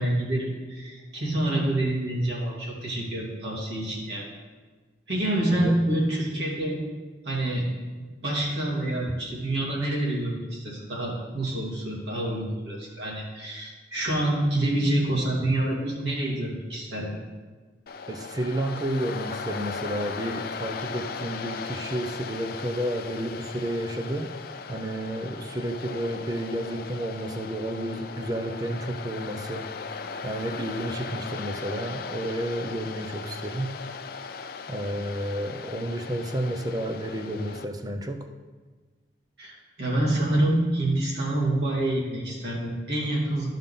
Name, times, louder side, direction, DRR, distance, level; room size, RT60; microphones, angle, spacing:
voice 1, 0.0-4.3 5.1-6.8 7.2-7.7 8.2-17.1 39.4-43.5, right 1 dB, 70° right, -5 dB, 2.4 m, -27 dB
Waves surf, 17.9-37.6, left 5 dB, 55° left, 0.4 m, -38 dB
voice 2, 18.1-24.3 24.7-29.7 30.2-33.7 34.7-38.3, right 1 dB, 20° right, 5 dB, 0.6 m, -31 dB
13.0 x 5.4 x 3.7 m, 1.4 s
head